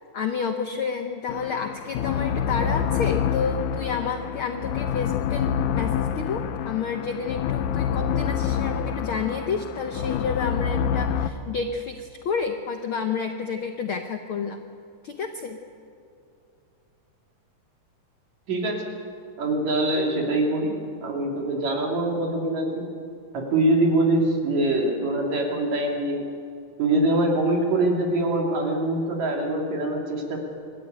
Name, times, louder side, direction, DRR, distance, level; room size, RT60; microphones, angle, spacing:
voice 1, 0.1-14.6 15.0-15.6, left 5 dB, 90° left, 6 dB, 1.1 m, -30 dB
sound 1, 1.3-11.3, left 8 dB, 70° left, 1.9 m, -27 dB
voice 2, 18.5-18.9 19.4-20.7 21.0-22.9 23.3-26.2 26.8-30.4, right 1 dB, 55° right, 1 dB, 3.8 m, -24 dB
25.0 x 14.0 x 9.3 m, 2.5 s
omnidirectional pair, 3.9 m